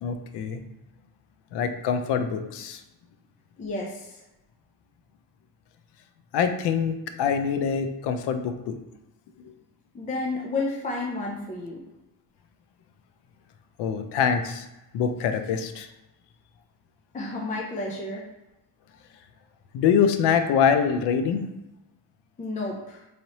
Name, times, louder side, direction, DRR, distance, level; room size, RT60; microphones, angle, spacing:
voice 1, 0.0-0.6 1.5-2.8 6.3-8.7 9.4-9.5 13.8-14.7 14.9-15.9 19.7-21.5, left 7 dB, 75° left, 7 dB, 0.6 m, -24 dB
voice 2, 3.6-4.2 9.9-11.8 17.1-18.2 22.4-23.0, left 2 dB, 20° left, -1 dB, 0.5 m, -31 dB
4.1 x 3.2 x 2.9 m, 0.93 s
cardioid pair, 130°, 41 cm